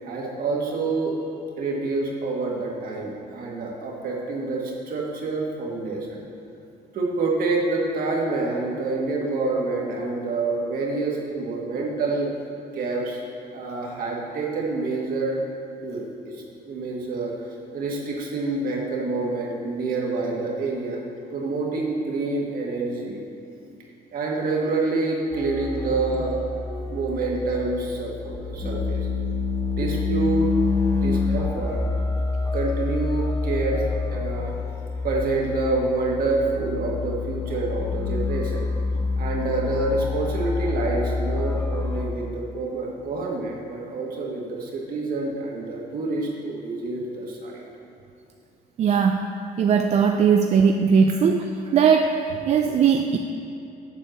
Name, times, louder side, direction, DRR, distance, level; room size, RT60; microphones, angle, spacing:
voice 1, 0.0-1.2 1.6-6.2 6.9-12.3 12.7-13.2 13.5-15.4 15.8-17.3 17.7-21.0 21.3-23.2 24.1-26.3 26.8-29.0 29.8-30.5 30.9-31.8 32.5-33.8 34.1-34.5 35.0-38.7 39.2-47.6, right 3 dB, 60° right, -2 dB, 1.6 m, -27 dB
sound 1, 25.3-42.0, left 4 dB, 15° left, 0.8 m, -27 dB
voice 2, 48.8-49.3 49.6-53.2, right 6 dB, 40° right, 5 dB, 0.4 m, -19 dB
7.5 x 4.6 x 6.5 m, 2.8 s
cardioid pair, 110°, 17 cm